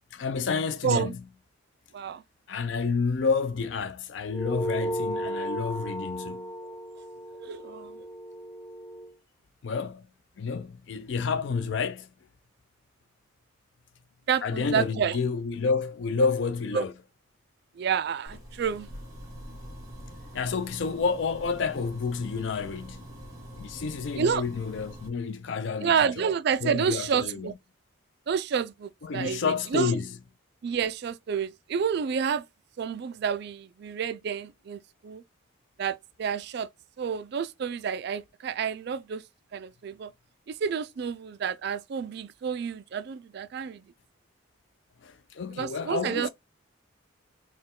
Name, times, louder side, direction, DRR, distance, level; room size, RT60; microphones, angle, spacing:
voice 1, 0.1-1.2 2.5-6.5 9.6-10.1 10.4-12.1 14.4-16.9 20.3-23.0 23.6-26.2 26.6-27.5 29.0-30.1 45.0-46.3, left 5 dB, 60° left, 0.4 m, -29 dB
voice 2, 0.8-1.1 1.9-2.2 7.4-8.1 14.3-15.2 16.7-16.8 17.8-18.9 24.1-24.4 25.8-27.5 28.3-30.0 30.6-32.4 32.8-35.2 35.8-36.7 37.0-39.2 39.5-40.1 40.6-43.8 45.6-46.3, right 7 dB, 50° right, 0.3 m, -29 dB
sound 1, 4.3-9.1, equal, 5° left, 0.6 m, -34 dB
sound 2, 18.2-25.1, equal, 15° right, 1.4 m, -44 dB
4.2 x 2.2 x 3.6 m
head